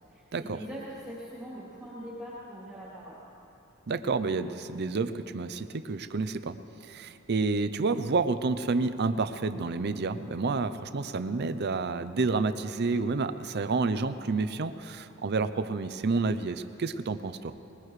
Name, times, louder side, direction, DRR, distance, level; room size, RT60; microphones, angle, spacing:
voice 1, 0.1-3.2, equal, 5° right, -9 dB, 2.9 m, -42 dB
voice 2, 3.9-6.6 6.8-17.5, right 3 dB, 50° right, 11 dB, 0.6 m, -29 dB
21.0 x 20.0 x 3.2 m, 3.0 s
head